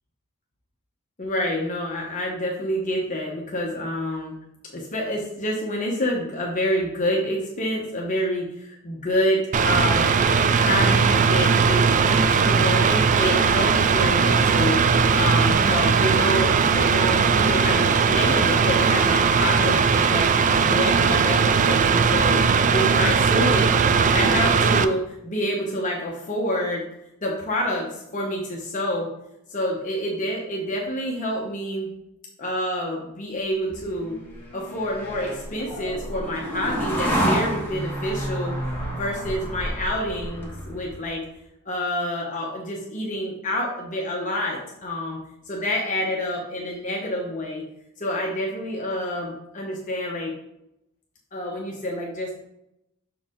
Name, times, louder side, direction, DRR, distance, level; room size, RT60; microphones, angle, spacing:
voice 1, 1.2-4.3 4.7-10.1 10.5-14.8 15.1-22.4 22.7-26.8 27.2-29.1 29.5-31.9 32.4-34.2 34.5-38.5 38.9-41.2 41.7-45.2 45.5-47.6 48.0-50.3 51.3-52.4, left 1 dB, 35° left, -2 dB, 0.9 m, -27 dB
Mechanical fan, 9.5-24.8, right 5 dB, 35° right, 0.3 m, -19 dB
sound 1, 33.7-41.1, equal, 10° left, 1.5 m, -29 dB
6.3 x 4.8 x 3.6 m, 0.83 s
head